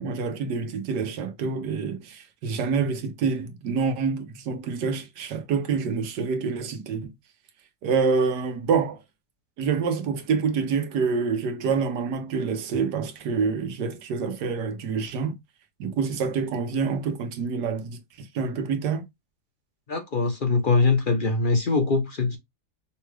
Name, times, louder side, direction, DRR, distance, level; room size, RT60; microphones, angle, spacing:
voice 1, 0.0-7.1 7.8-9.0 9.6-15.4 15.8-19.0, right 5 dB, 85° right, 1.4 m, -27 dB
voice 2, 19.9-22.4, left 3 dB, 45° left, 0.7 m, -22 dB
5.6 x 2.3 x 3.2 m
omnidirectional pair, 1.7 m